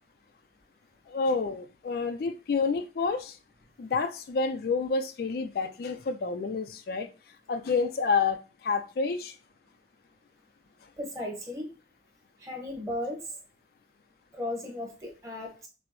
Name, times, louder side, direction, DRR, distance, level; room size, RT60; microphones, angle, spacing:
voice 1, 1.1-3.4 3.8-7.1 7.5-9.3, left 4 dB, 55° left, 0.3 m, -29 dB
voice 2, 11.0-11.7 12.4-13.3 14.3-15.7, left 1 dB, 15° right, 1.1 m, -35 dB
6.0 x 2.0 x 2.9 m
head